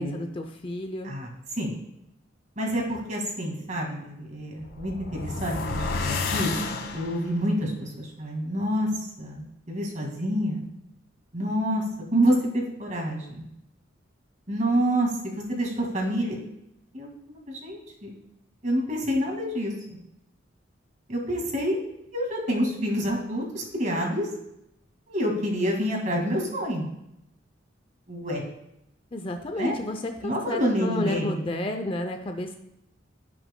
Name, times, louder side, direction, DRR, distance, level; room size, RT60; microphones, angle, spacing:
voice 1, 0.0-1.1 29.1-32.6, left 1 dB, 25° left, 6 dB, 0.5 m, -31 dB
voice 2, 1.0-1.8 2.6-6.5 6.9-10.6 11.3-11.8 12.1-13.4 14.5-16.4 16.9-18.1 18.6-20.0 21.1-21.8 22.1-24.3 25.1-26.9 28.1-28.4 29.6-29.8 30.2-31.4, equal, 40° right, 0 dB, 2.0 m, -28 dB
sound 1, 4.6-7.4, left 3 dB, 80° left, 1.1 m, -30 dB
16.0 x 6.0 x 2.2 m, 0.84 s
head